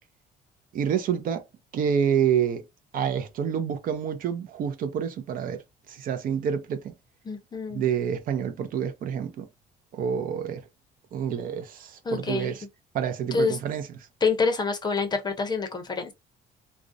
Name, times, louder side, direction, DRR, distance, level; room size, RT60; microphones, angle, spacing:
voice 1, 0.7-1.4 1.7-2.6 2.9-5.6 5.9-6.9 7.7-9.5 9.9-10.6 11.1-12.6 12.9-13.9, right 8 dB, 55° right, 0.5 m, -28 dB
voice 2, 7.2-7.8 12.0-12.5 13.3-13.6 14.2-16.1, left 4 dB, 25° left, 0.6 m, -26 dB
2.4 x 2.0 x 2.5 m
cardioid pair, 110°, 17 cm